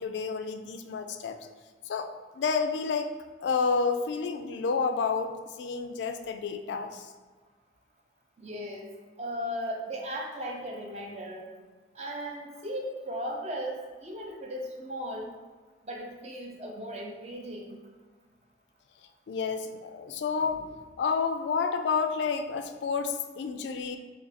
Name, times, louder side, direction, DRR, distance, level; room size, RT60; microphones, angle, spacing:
voice 1, 0.0-1.4 1.9-2.1 2.4-3.1 3.4-7.1 19.3-24.0, left 5 dB, 80° left, 7 dB, 0.3 m, -30 dB
voice 2, 8.4-8.9 9.2-11.5 11.9-15.4 15.9-17.8, equal, 35° right, 0 dB, 0.5 m, -37 dB
3.4 x 2.4 x 4.0 m, 1.4 s
head